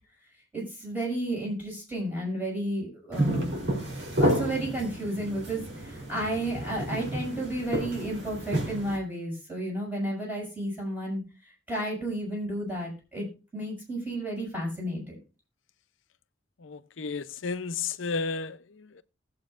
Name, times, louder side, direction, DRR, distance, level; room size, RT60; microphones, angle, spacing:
voice 1, 0.5-3.5 4.2-15.2, right 1 dB, 10° right, 6.4 m, -32 dB
sound 1, 3.1-9.0, right 1 dB, 60° right, 3.2 m, -30 dB
voice 2, 16.6-19.0, left 4 dB, 85° left, 0.7 m, -33 dB
20.0 x 7.7 x 2.5 m
head